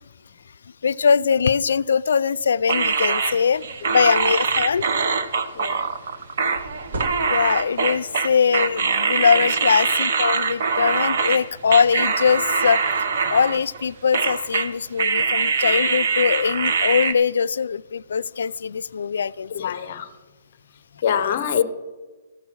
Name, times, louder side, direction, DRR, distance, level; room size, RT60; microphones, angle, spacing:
voice 1, 0.8-4.9 7.3-12.8 13.3-19.7, left 6 dB, 75° left, 0.3 m, -21 dB
sound 1, 2.6-2.9 3.3-3.5 3.8-4.9 6.5-7.8, right 1 dB, 60° right, 1.3 m, -36 dB
sound 2, 2.7-11.4 11.7-13.8 14.1-14.7 15.0-17.1, right 5 dB, 45° right, 0.8 m, -23 dB
voice 2, 5.5-5.9 9.3-9.4 19.5-20.1 21.0-21.6, left 8 dB, 35° left, 0.7 m, -24 dB
14.5 x 6.4 x 6.1 m
hypercardioid pair, 180°, 0 cm